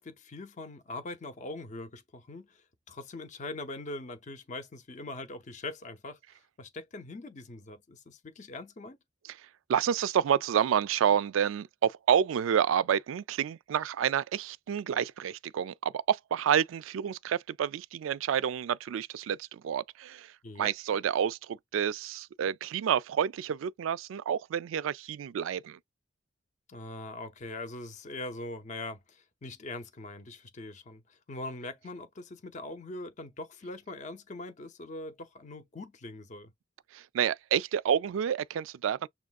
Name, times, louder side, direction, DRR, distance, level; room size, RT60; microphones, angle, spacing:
voice 1, 0.0-6.2 6.6-9.0 20.4-20.7 26.7-36.5, left 2 dB, 35° left, 0.6 m, -42 dB
voice 2, 9.2-25.8 36.9-39.1, right 8 dB, 80° right, 0.3 m, -29 dB
6.9 x 2.4 x 2.3 m
head